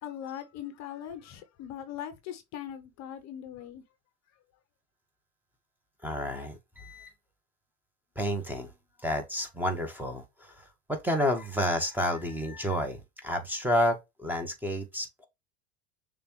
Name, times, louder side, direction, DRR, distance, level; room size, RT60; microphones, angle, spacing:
voice 1, 0.0-3.8, left 10 dB, 40° left, 0.8 m, -40 dB
voice 2, 6.0-7.1 8.2-8.7 9.0-15.3, equal, 5° right, 1.1 m, -30 dB
6.6 x 2.5 x 3.0 m
hypercardioid pair, 90°, 44 cm